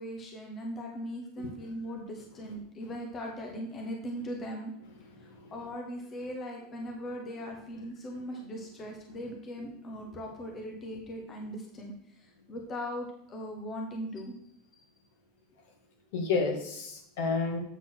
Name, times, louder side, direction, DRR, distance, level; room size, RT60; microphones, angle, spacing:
voice 1, 0.0-4.7 5.2-14.3 14.7-14.8, equal, 20° left, 1 dB, 1.0 m, -39 dB
voice 2, 5.2-5.5 16.1-17.6, left 4 dB, 70° left, 2 dB, 2.1 m, -31 dB
8.0 x 4.2 x 6.2 m, 0.78 s
supercardioid pair, 170°, 0 cm